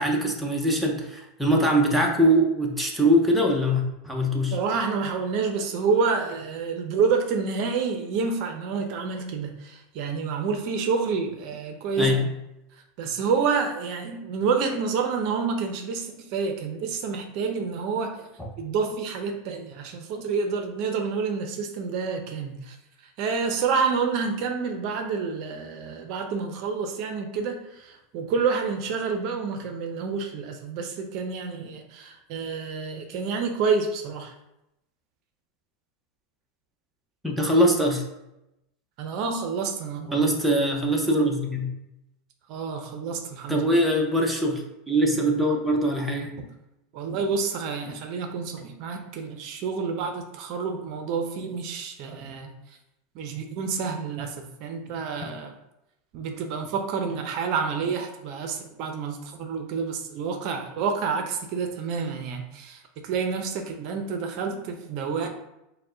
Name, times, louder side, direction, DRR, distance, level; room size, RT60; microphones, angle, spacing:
voice 1, 0.0-4.6 12.0-12.2 18.4-18.5 37.2-38.0 40.1-41.7 43.5-46.4, equal, ahead, -1 dB, 0.7 m, -22 dB
voice 2, 4.5-12.3 13.0-18.3 18.6-22.8 23.2-34.3 39.0-40.3 42.5-43.7 46.4-46.5 46.9-52.5 53.1-55.5 56.1-65.3, right 5 dB, 55° right, 4 dB, 0.5 m, -28 dB
4.4 x 2.1 x 3.7 m, 0.89 s
supercardioid pair, 120°, 0 cm